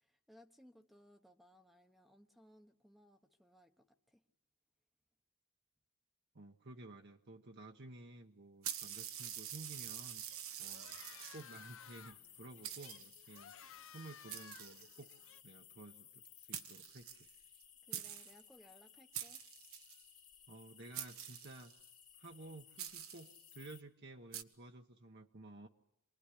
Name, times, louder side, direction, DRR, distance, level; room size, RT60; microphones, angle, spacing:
voice 1, 0.0-4.2 17.9-19.4, equal, ahead, 5 dB, 1.1 m, -64 dB
voice 2, 6.3-10.2 10.6-11.0 11.3-13.5 13.9-15.1 15.4-17.3 20.5-21.7 22.2-25.7, right 2 dB, 50° right, 3 dB, 1.2 m, -54 dB
sound 1, 8.6-23.8, left 9 dB, 35° left, 1.7 m, -61 dB
sound 2, 8.6-11.6 12.3-12.4 12.6-13.4 14.3-15.3 16.3-16.4 16.5-17.6 17.9-18.4 19.1-20.0 20.9-21.8 22.8-23.4 24.3-24.4, right 10 dB, 70° right, 1.3 m, -46 dB
sound 3, 10.3-15.4, left 8 dB, 65° left, 1.0 m, -57 dB
27.5 x 21.0 x 10.0 m, 0.83 s
head